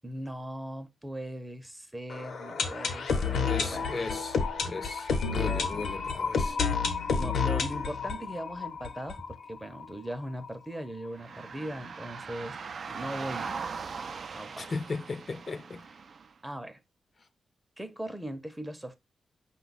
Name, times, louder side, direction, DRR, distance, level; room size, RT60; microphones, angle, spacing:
voice 1, 0.0-3.9 7.2-12.6 12.9-14.7 16.4-16.8 17.8-19.0, right 1 dB, 10° right, 0.6 m, -39 dB
sound 1, 2.1-9.9 10.1-10.2 10.4-10.5 11.0-11.1, left 5 dB, 85° left, 0.8 m, -30 dB
voice 2, 3.4-4.4 4.6-6.6 14.6-15.8, left 3 dB, 45° left, 0.5 m, -36 dB
sound 2, 11.1-16.3, right 5 dB, 60° right, 0.3 m, -40 dB
5.2 x 2.3 x 4.0 m
cardioid pair, 85°, 0 cm